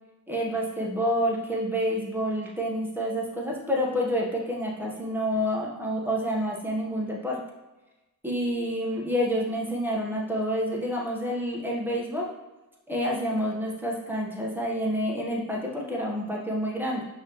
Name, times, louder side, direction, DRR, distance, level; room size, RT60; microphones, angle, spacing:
voice 1, 0.3-7.4 8.2-12.3 12.9-17.0, equal, 5° right, -2 dB, 1.2 m, -28 dB
5.5 x 3.1 x 3.1 m, 1.1 s
cardioid pair, 60°, 40 cm